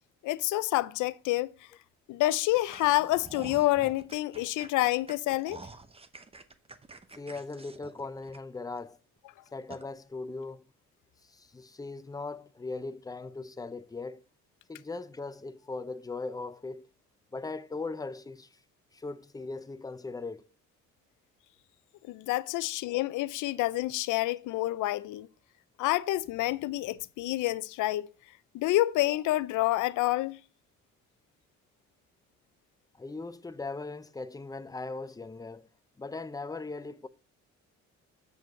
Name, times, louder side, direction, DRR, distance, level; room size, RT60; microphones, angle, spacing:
voice 1, 0.2-1.5 2.1-5.6 22.1-25.3 25.8-28.1 28.5-30.4, left 17 dB, 90° left, 0.5 m, -28 dB
sound 1, 2.5-8.8 9.2-9.3 9.7-9.8, right 3 dB, 20° right, 0.9 m, -48 dB
voice 2, 7.1-9.0 9.5-10.6 11.2-14.2 14.7-16.9 17.3-18.6 18.9-20.4 29.0-29.2 33.0-35.7 36.0-37.1, left 3 dB, 10° left, 0.6 m, -39 dB
8.0 x 5.2 x 6.0 m
cardioid pair, 90°, 30 cm